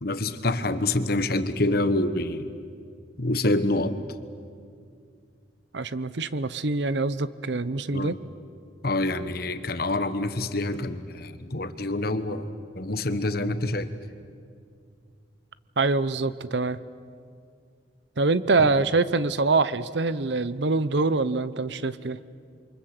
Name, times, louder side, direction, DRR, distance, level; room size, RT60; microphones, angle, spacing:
voice 1, 0.0-2.5 3.2-4.0 7.9-8.2 8.8-13.9 18.6-18.7, left 2 dB, 50° left, 11 dB, 1.3 m, -27 dB
voice 2, 5.7-8.2 15.8-16.8 18.2-22.2, right 3 dB, 65° right, 16 dB, 0.8 m, -24 dB
28.0 x 24.5 x 7.9 m, 2.3 s
head